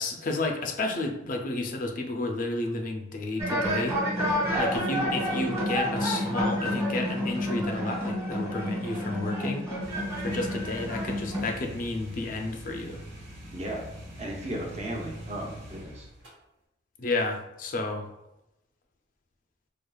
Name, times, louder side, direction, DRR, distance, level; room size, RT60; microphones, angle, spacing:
voice 1, 0.0-4.0 4.5-9.7 10.2-13.0 17.0-18.1, left 2 dB, 45° left, 3 dB, 0.4 m, -31 dB
sound 1, 3.4-11.5, equal, 15° right, 1.3 m, -29 dB
sound 2, 9.8-16.3, equal, 75° right, 1.0 m, -43 dB
voice 2, 13.5-13.9 14.2-16.1, right 1 dB, 35° right, -1 dB, 0.6 m, -35 dB
4.5 x 2.3 x 2.3 m, 0.88 s
head